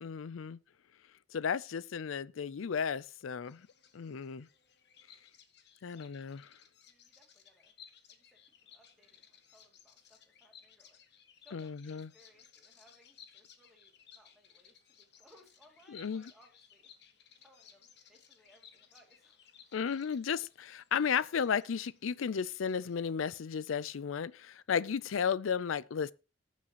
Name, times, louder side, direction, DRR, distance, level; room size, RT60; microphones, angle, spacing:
voice 1, 0.0-0.6 1.3-3.7 3.9-4.5 5.8-6.4 11.5-12.1 15.9-16.3 19.7-26.1, left 7 dB, 80° left, 0.4 m, -34 dB
Bird vocalization bird call bird song, 3.4-23.0, left 8 dB, 55° left, 1.3 m, -60 dB
voice 2, 5.9-6.3 6.9-7.7 8.1-16.9 17.4-19.8, equal, ahead, 2.4 m, -66 dB
18.0 x 7.4 x 2.9 m
head